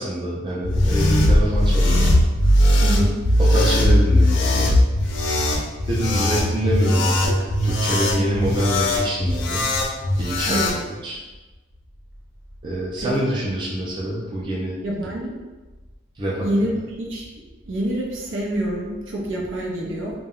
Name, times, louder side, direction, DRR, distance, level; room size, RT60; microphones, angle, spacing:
voice 1, 0.0-2.2 3.4-4.7 5.9-9.7 10.2-10.6 11.0-11.2 12.6-14.8 16.2-16.5, right 1 dB, 25° right, -5 dB, 0.4 m, -25 dB
sound 1, 0.6-10.8, left 1 dB, 70° left, 0.4 m, -19 dB
voice 2, 10.5-10.8 13.0-13.1 14.8-15.4 16.4-16.7 17.0-17.3 17.7-20.1, right 1 dB, 80° right, -2 dB, 0.6 m, -26 dB
2.2 x 2.1 x 3.5 m, 1.2 s
head